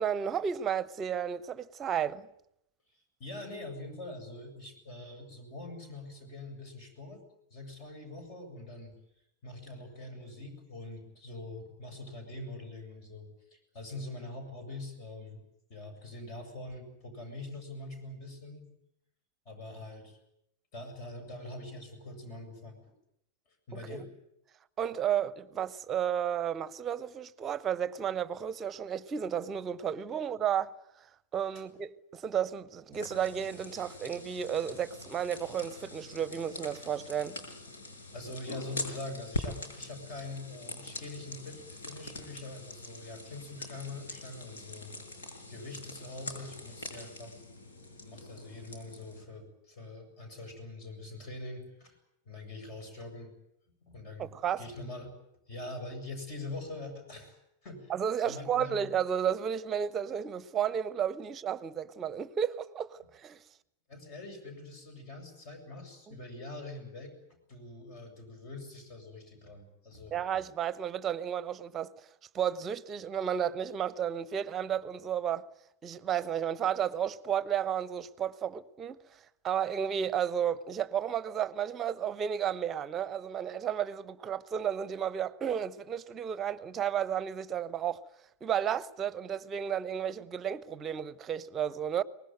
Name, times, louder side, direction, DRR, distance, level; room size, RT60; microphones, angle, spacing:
voice 1, 0.0-2.3 23.9-24.0 24.8-31.1 31.3-37.4 54.2-54.6 57.9-63.4 66.1-66.2 70.1-71.9 72.3-75.5 75.8-79.0 79.4-88.0 88.4-92.0, right 9 dB, 25° right, 1.0 m, -32 dB
voice 2, 2.9-7.2 7.5-8.9 9.4-15.4 15.7-18.7 19.5-20.2 20.7-22.8 23.7-24.1 31.5-31.6 38.1-44.9 45.5-47.4 48.0-52.0 52.2-53.3 53.8-54.3 54.6-55.1 55.5-57.9 58.2-58.9 63.9-70.1, left 2 dB, 40° left, 7.7 m, -44 dB
sound 1, 32.9-49.2, left 2 dB, 65° left, 5.8 m, -43 dB
23.5 x 20.0 x 9.2 m
figure-of-eight pair, 90°, 0 cm